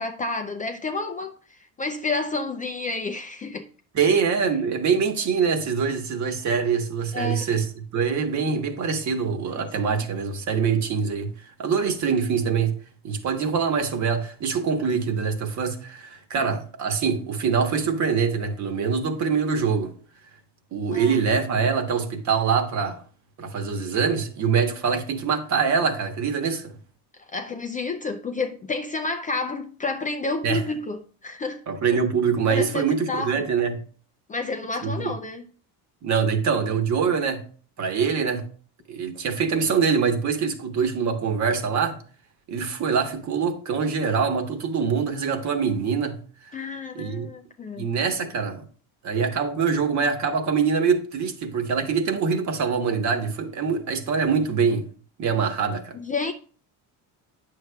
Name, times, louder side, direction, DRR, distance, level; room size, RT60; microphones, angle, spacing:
voice 1, 0.0-3.7 4.0-4.2 7.1-7.5 9.6-9.7 16.4-16.5 20.9-21.2 27.3-31.6 32.5-33.3 34.3-35.4 46.5-47.9 55.9-56.3, left 3 dB, 20° left, 0.4 m, -30 dB
voice 2, 3.9-11.3 11.6-12.7 13.0-19.9 20.7-23.0 23.4-26.7 30.4-30.6 31.7-33.8 34.8-35.1 36.0-37.4 37.8-38.5 38.9-42.0 42.5-46.1 46.9-47.3 47.8-48.6 49.0-54.9 55.2-55.9, right 6 dB, 45° right, 1.3 m, -24 dB
9.2 x 6.7 x 2.3 m
supercardioid pair, 105°, 39 cm